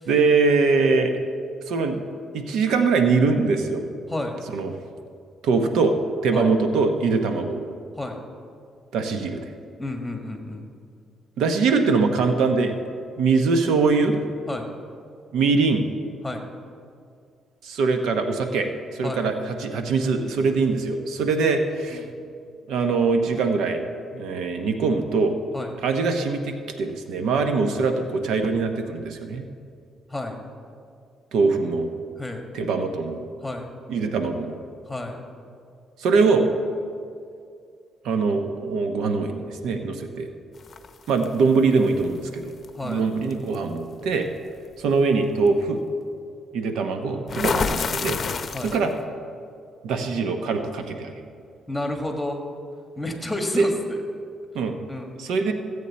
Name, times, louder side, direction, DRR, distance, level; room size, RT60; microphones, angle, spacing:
voice 1, 0.1-1.1 1.7-2.0 2.3-3.8 4.5-4.7 5.4-5.9 6.2-7.7 8.9-9.5 11.4-12.8 13.2-14.2 15.3-15.8 17.6-22.1 22.7-23.8 24.1-25.4 25.8-29.4 31.3-31.9 32.5-33.2 33.9-34.6 36.0-36.4 38.0-40.3 41.1-42.5 42.8-44.3 44.8-45.8 46.5-48.2 48.6-48.9 49.8-51.2 53.5-53.7 54.5-54.8 55.2-55.5, right 4 dB, 85° right, 6 dB, 0.8 m, -22 dB
voice 2, 4.1-4.4 6.3-6.5 8.0-8.2 9.8-10.7 14.5-14.7 16.2-16.5 19.0-19.3 21.9-22.1 25.5-25.8 30.1-30.4 32.2-32.5 33.4-33.7 34.9-35.2 42.7-43.0 48.5-48.8 51.7-52.4 53.0-54.0 54.9-55.2, left 1 dB, 5° left, 3 dB, 1.6 m, -31 dB
sound 1, 40.7-41.3 42.6-42.8 43.3-43.5 47.3-49.0, left 5 dB, 45° left, 0.6 m, -27 dB
15.0 x 8.2 x 4.2 m, 2.3 s
cardioid pair, 90°, 0 cm